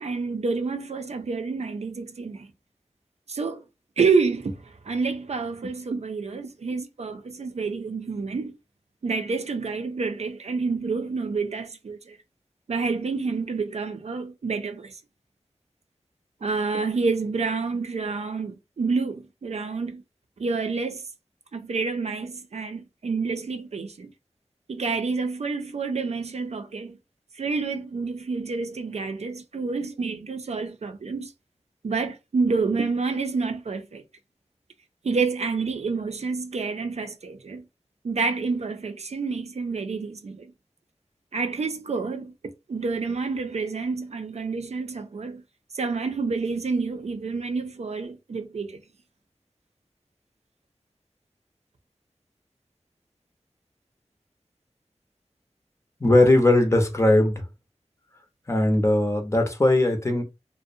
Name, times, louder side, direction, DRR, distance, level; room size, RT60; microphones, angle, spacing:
voice 1, 0.0-2.5 3.3-3.6 4.0-8.5 9.0-12.2 12.7-15.0 16.4-20.0 20.4-21.0 21.5-24.1 24.7-27.0 27.3-31.3 31.8-34.0 35.0-37.6 38.0-40.5 41.3-42.3 42.7-45.4 45.7-48.8, right 4 dB, 70° right, 0.4 m, -28 dB
voice 2, 56.0-57.5 58.5-60.2, left 1 dB, 25° left, 0.7 m, -19 dB
2.5 x 2.1 x 2.6 m
wide cardioid pair, 60°, 11 cm